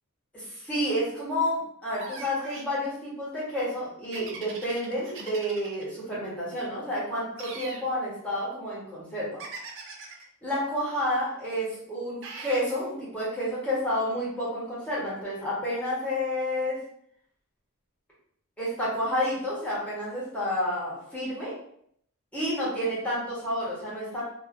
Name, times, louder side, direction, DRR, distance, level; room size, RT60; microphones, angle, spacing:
voice 1, 0.3-9.4 10.4-16.8 18.6-21.5 22.3-24.2, equal, 5° left, -9 dB, 1.2 m, -30 dB
sound 1, 2.0-2.7 4.1-5.8 7.4-7.9 9.4-10.2 12.2-12.7, right 4 dB, 60° right, 0.5 m, -41 dB
2.6 x 2.6 x 2.5 m, 0.67 s
head